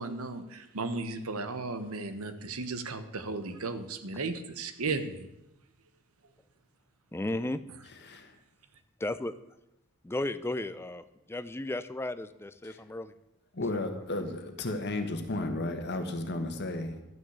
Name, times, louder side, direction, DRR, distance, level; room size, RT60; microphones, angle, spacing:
voice 1, 0.0-5.3, right 3 dB, 75° right, 10 dB, 1.1 m, -35 dB
voice 2, 7.1-7.6 9.0-9.3 10.0-13.1, left 1 dB, 10° left, 13 dB, 0.4 m, -34 dB
voice 3, 7.8-8.4 12.6-12.8 13.5-17.1, left 2 dB, 50° left, 6 dB, 1.4 m, -34 dB
12.5 x 6.3 x 8.0 m, 0.89 s
head